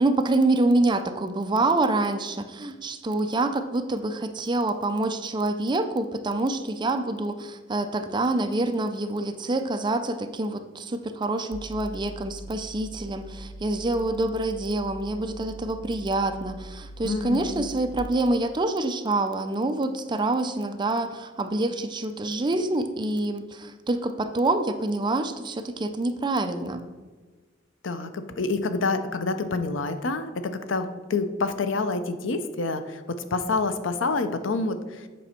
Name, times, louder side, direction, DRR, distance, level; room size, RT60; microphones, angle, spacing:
voice 1, 0.0-26.9, right 2 dB, 25° right, 8 dB, 0.5 m, -26 dB
sound 1, 11.5-18.0, right 1 dB, 65° right, 2.1 m, -42 dB
voice 2, 17.0-17.7 27.8-35.1, left 3 dB, 75° left, 10 dB, 0.6 m, -28 dB
8.3 x 5.3 x 4.3 m, 1.4 s
head